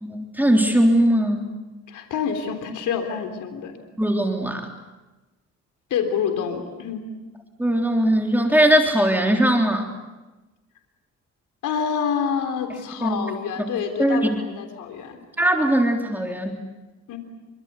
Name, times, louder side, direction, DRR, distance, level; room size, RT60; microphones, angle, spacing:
voice 1, 0.0-1.5 4.0-4.7 7.6-9.9 13.0-13.2 14.0-14.4 15.4-16.6, right 1 dB, 5° right, 2 dB, 3.5 m, -20 dB
voice 2, 1.9-3.8 5.9-7.1 11.6-15.2 17.1-17.2, left 7 dB, 80° left, 6 dB, 3.7 m, -27 dB
26.5 x 25.0 x 8.3 m, 1.1 s
cardioid pair, 90°, 30 cm